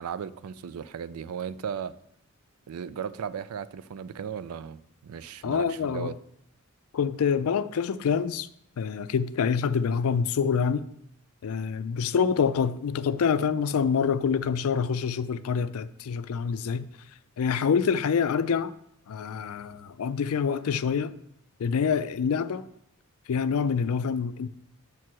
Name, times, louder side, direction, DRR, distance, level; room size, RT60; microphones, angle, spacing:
voice 1, 0.0-1.9 2.7-6.1, right 7 dB, 75° right, 0.4 m, -36 dB
voice 2, 5.4-6.1 6.9-8.5 8.8-10.9 11.4-16.9 17.4-18.7 19.1-21.1 21.6-22.7 23.3-24.5, left 6 dB, 70° left, 0.4 m, -26 dB
6.0 x 4.6 x 6.1 m
head